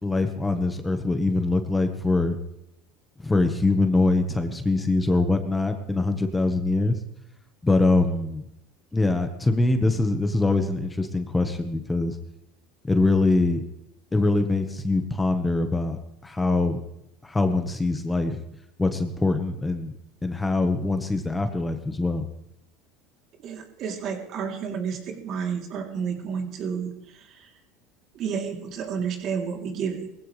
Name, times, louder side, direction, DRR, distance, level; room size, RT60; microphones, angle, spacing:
voice 1, 0.0-2.4 3.2-7.0 7.6-8.4 8.9-12.2 12.9-13.6 14.1-16.8 17.2-18.4 18.8-19.9 20.2-22.3, left 2 dB, 15° left, 7 dB, 1.4 m, -23 dB
voice 2, 23.4-27.5 28.1-30.1, right 6 dB, 50° right, 2 dB, 3.2 m, -31 dB
19.0 x 15.5 x 3.4 m, 0.83 s
supercardioid pair, 105°, 0 cm